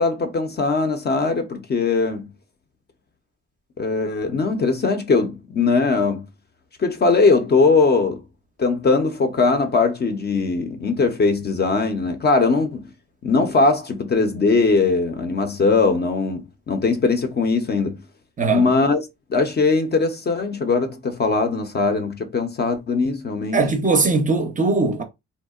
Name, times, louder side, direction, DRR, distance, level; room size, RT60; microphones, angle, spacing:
voice 1, 0.0-2.3 3.8-6.2 6.8-8.2 8.6-12.8 13.2-18.0 18.5-19.0 19.3-23.6, left 4 dB, 35° left, 0.5 m, -20 dB
voice 2, 18.4-18.7 23.5-25.0, right 3 dB, 25° right, 0.5 m, -20 dB
2.7 x 2.0 x 2.3 m
cardioid pair, 90°, 30 cm